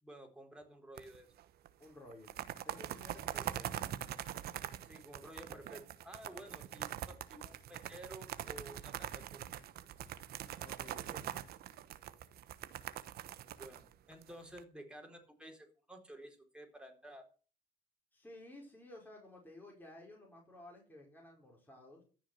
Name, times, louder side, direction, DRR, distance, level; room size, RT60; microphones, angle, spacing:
voice 1, 0.0-1.3 3.3-3.5 4.8-9.4 13.5-17.3, right 1 dB, 5° right, 3 dB, 4.2 m, -53 dB
sound 1, 1.0-1.4 1.7-1.8 2.1-14.6, right 11 dB, 65° right, 1.1 m, -43 dB
voice 2, 1.8-2.3 2.6-3.7 6.3-6.5 10.6-11.2 18.1-22.0, left 1 dB, 10° left, -1 dB, 5.0 m, -54 dB
14.5 x 6.4 x 7.9 m, 0.39 s
cardioid pair, 110°, 17 cm